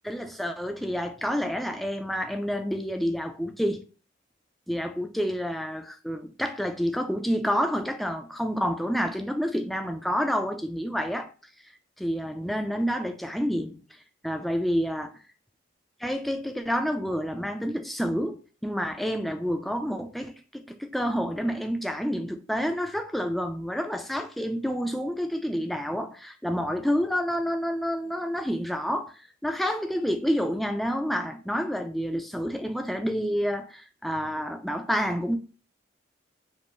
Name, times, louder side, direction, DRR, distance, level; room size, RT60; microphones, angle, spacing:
voice 1, 0.1-3.8 4.7-11.3 12.0-13.8 14.2-15.1 16.0-35.4, equal, ahead, 0.3 m, -29 dB
5.2 x 2.5 x 3.0 m
head